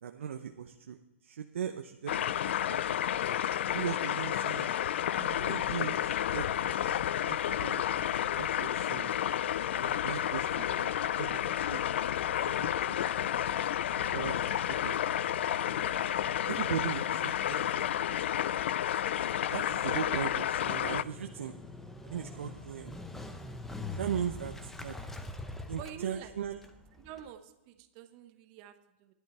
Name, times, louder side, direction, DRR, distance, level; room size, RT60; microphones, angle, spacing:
voice 1, 0.0-2.9 3.7-4.7 5.2-9.2 9.7-13.5 14.1-15.0 15.7-16.1 16.5-18.5 19.5-21.5 22.0-23.0 23.9-25.0 25.7-26.7, right 8 dB, 75° right, 5 dB, 0.8 m, -39 dB
sound 1, 2.1-21.0, left 11 dB, 60° left, 0.3 m, -31 dB
sound 2, 13.9-21.6, right 2 dB, 30° left, 1.3 m, -54 dB
Motorcycle, 20.5-27.3, left 2 dB, 5° left, 0.7 m, -43 dB
voice 2, 25.8-26.3 27.0-27.4 27.7-28.7, right 10 dB, 35° right, 9 dB, 0.9 m, -45 dB
13.5 x 11.5 x 4.3 m, 0.98 s
hypercardioid pair, 150°, 7 cm